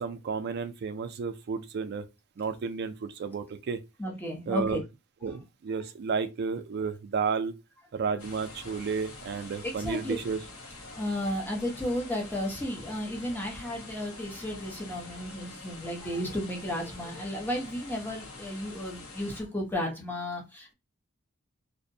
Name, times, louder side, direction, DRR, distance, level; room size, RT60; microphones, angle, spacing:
voice 1, 0.0-2.0 2.4-3.8 4.5-4.8 5.2-7.5 7.9-10.4, right 5 dB, 50° right, 0.3 m, -32 dB
voice 2, 4.0-4.8 5.2-5.4 9.6-10.2 10.9-20.7, left 1 dB, 10° left, 0.6 m, -33 dB
sound 1, 8.2-19.4, left 3 dB, 75° left, 0.9 m, -46 dB
2.6 x 2.1 x 2.5 m
head